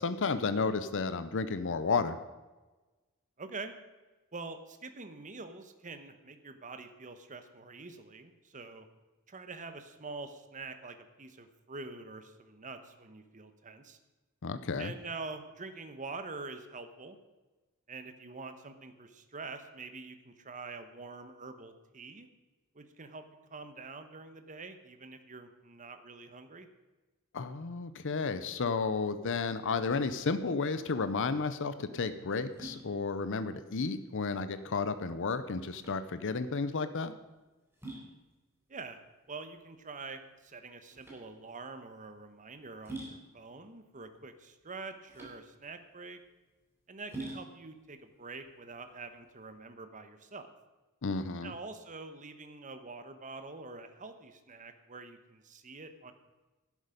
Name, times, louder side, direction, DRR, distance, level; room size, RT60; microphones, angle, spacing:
voice 1, 0.0-2.2 14.4-14.9 27.3-37.1 51.0-51.5, left 4 dB, 60° left, 12 dB, 0.7 m, -32 dB
voice 2, 3.4-3.7 4.3-8.8 9.3-14.0 14.8-17.2 17.9-22.3 22.7-23.2 23.5-26.7 38.7-39.0 39.3-46.2 46.9-50.5 51.4-56.1, right 3 dB, 35° right, 8 dB, 1.1 m, -45 dB
sound 1, 31.0-49.5, right 2 dB, 10° right, 3.7 m, -49 dB
12.0 x 11.0 x 5.2 m, 1.2 s
head